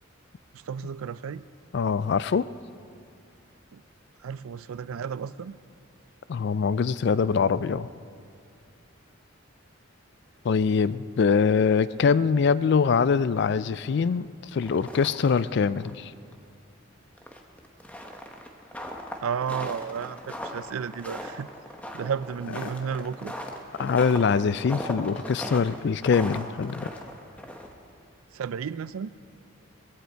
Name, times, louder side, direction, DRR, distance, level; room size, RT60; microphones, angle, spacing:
voice 1, 0.5-1.4 3.7-3.8 4.2-5.6 19.2-21.5 21.9-23.3 28.3-29.1, right 7 dB, 85° right, 17 dB, 0.4 m, -33 dB
voice 2, 1.7-2.5 6.3-7.9 10.4-16.1 23.8-26.9, left 5 dB, 55° left, 17 dB, 0.3 m, -23 dB
sound 1, 14.5-15.5 15.8-15.9 16.3-16.4 17.2-27.9, equal, 5° left, 0.9 m, -38 dB
19.0 x 16.0 x 4.5 m, 2.5 s
head